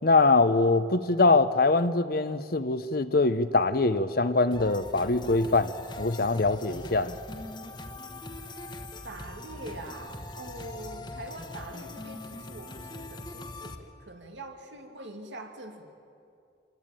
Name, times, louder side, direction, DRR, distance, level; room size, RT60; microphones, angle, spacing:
voice 1, 0.0-7.1, left 3 dB, 55° left, 11 dB, 0.9 m, -23 dB
sound 1, 4.5-13.8, left 2 dB, 25° left, 1.4 m, -42 dB
voice 2, 9.0-15.9, right 1 dB, 80° right, 4 dB, 2.7 m, -43 dB
26.5 x 20.0 x 9.1 m, 2.5 s
head